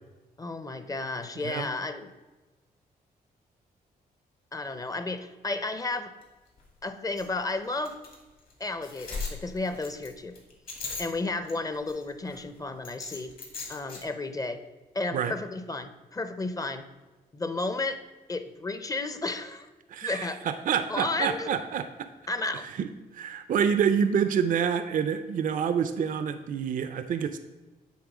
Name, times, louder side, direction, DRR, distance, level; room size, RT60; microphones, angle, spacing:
voice 1, 0.4-2.1 4.5-6.1 6.8-8.0 8.6-10.3 11.0-13.3 13.7-14.6 14.9-16.9 17.3-18.0 18.3-19.7 20.0-20.5 20.9-21.5 22.3-22.7, left 3 dB, 20° left, 10 dB, 0.6 m, -32 dB
sound 1, 6.2-6.3 6.6-6.7 7.2-7.3 7.8-8.2 8.5-8.6 8.8-11.5 11.8-12.4 12.8-14.0, left 4 dB, 60° left, 2.2 m, -38 dB
voice 2, 19.9-22.1 22.5-22.9 23.1-27.4, right 7 dB, 55° right, 11 dB, 0.5 m, -27 dB
8.5 x 3.6 x 6.0 m, 1.2 s
cardioid pair, 95°, 16 cm